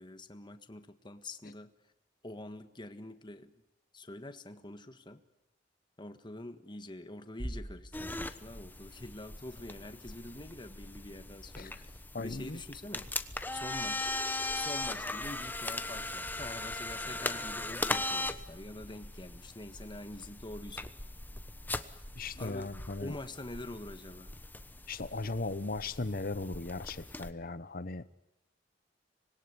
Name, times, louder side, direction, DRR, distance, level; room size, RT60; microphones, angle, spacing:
voice 1, 0.0-1.7 2.2-3.5 3.9-5.2 6.0-13.2 13.5-14.1 14.5-20.9 22.4-22.7 23.0-24.4, left 1 dB, 25° left, 8 dB, 1.6 m, -45 dB
Bass drum, 7.4-9.1, right 1 dB, 25° right, 2.0 m, -43 dB
sound 1, 7.9-27.3, left 2 dB, 10° left, 1.1 m, -39 dB
voice 2, 12.1-12.6 22.2-23.1 24.9-28.0, left 3 dB, 50° left, 13 dB, 1.0 m, -37 dB
25.5 x 21.0 x 9.8 m, 0.86 s
head